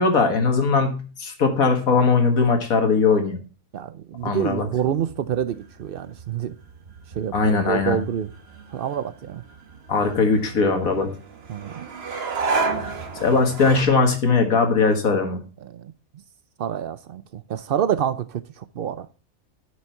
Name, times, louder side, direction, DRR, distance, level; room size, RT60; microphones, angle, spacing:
voice 1, 0.0-3.4 4.2-4.7 7.3-8.0 9.9-11.1 13.2-15.4, left 4 dB, 65° left, 2.0 m, -20 dB
voice 2, 3.7-6.5 7.1-8.3 8.7-9.4 11.5-11.8 15.6-15.9 16.6-19.1, right 9 dB, 90° right, 0.4 m, -27 dB
sound 1, 4.2-13.8, right 4 dB, 45° right, 1.3 m, -33 dB
9.7 x 6.3 x 4.4 m
omnidirectional pair, 1.6 m